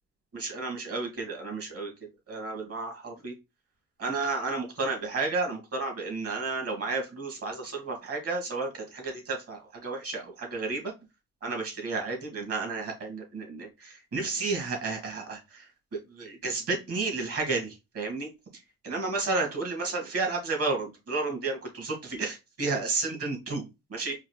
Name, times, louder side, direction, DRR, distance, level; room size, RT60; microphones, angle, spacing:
voice 1, 0.3-1.9 2.3-3.3 4.0-10.9 11.4-15.7 16.1-18.3 18.8-23.6 23.9-24.2, right 3 dB, 50° right, 2 dB, 2.4 m, -32 dB
4.7 x 2.8 x 3.4 m, 0.25 s
cardioid pair, 90°, 30 cm